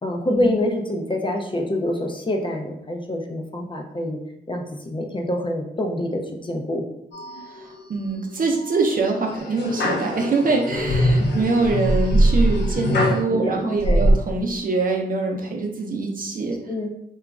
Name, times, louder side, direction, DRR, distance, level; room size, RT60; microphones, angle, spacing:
voice 1, 0.0-4.2 4.5-6.8 11.2-11.3 12.9-14.1 16.7-16.9, left 1 dB, 30° left, 2 dB, 0.4 m, -26 dB
sound 1, 7.1-7.8 8.3-8.7 9.3-13.2 13.8-14.1, equal, 80° left, 0.5 m, -21 dB
voice 2, 7.4-16.6, right 3 dB, 55° right, 1 dB, 0.6 m, -24 dB
2.9 x 2.3 x 2.3 m, 0.78 s
cardioid pair, 70°, 18 cm